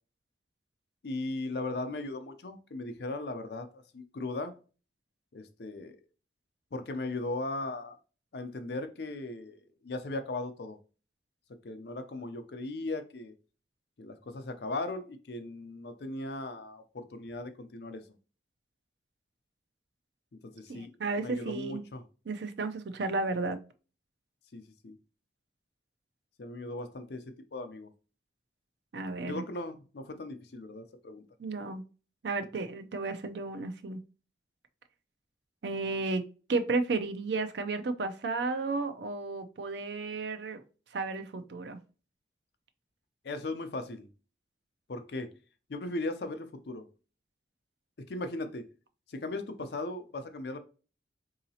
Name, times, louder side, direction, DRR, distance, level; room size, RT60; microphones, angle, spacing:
voice 1, 1.0-4.5 5.3-6.0 6.7-8.0 8.3-10.8 11.6-13.3 14.0-18.0 20.4-20.9 21.2-22.0 24.5-24.9 26.4-27.9 29.2-31.2 43.2-44.1 44.9-45.3 45.7-46.9 48.0-48.6 49.1-50.6, left 2 dB, 65° left, 0.5 m, -38 dB
voice 2, 20.7-21.8 22.3-23.6 28.9-29.4 31.4-31.8 32.2-34.0 35.6-36.2 36.5-40.6 40.9-41.8, right 3 dB, 75° right, 0.5 m, -33 dB
3.9 x 2.8 x 2.7 m
head